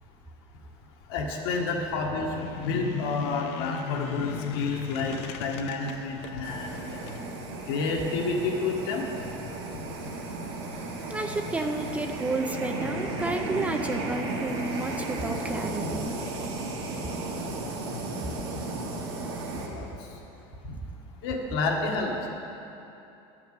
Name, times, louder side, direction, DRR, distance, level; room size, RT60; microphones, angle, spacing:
voice 1, 1.1-7.0 7.6-9.1 9.7-9.8 19.6-20.2 20.6-20.8 21.2-22.3, left 3 dB, 75° left, 0 dB, 1.5 m, -30 dB
sound 1, 2.2-7.2, left 7 dB, 50° left, 0.6 m, -36 dB
sound 2, 6.4-19.7, right 2 dB, 75° right, 1.8 m, -34 dB
voice 2, 11.1-16.1, right 2 dB, 10° right, 5 dB, 0.4 m, -31 dB
10.5 x 5.9 x 7.4 m, 2.9 s
cardioid pair, 155°, 13 cm